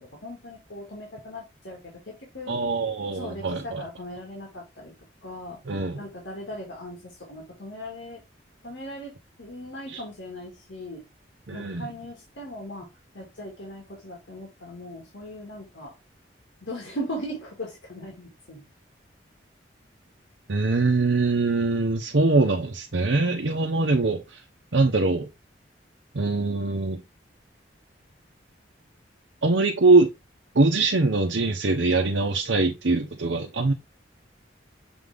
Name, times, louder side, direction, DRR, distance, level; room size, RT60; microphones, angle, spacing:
voice 1, 0.0-2.6 3.1-4.9 5.2-5.6 5.9-8.2 8.6-9.1 9.4-11.1 11.5-15.9 16.6-18.7, equal, 85° left, 2.2 m, -39 dB
voice 2, 2.5-3.8 5.7-6.0 9.9-10.0 11.5-11.9 20.5-24.4 24.7-25.3 26.1-27.0 29.4-30.1 30.5-33.7, right 3 dB, 80° right, 0.9 m, -22 dB
7.0 x 3.9 x 3.5 m
head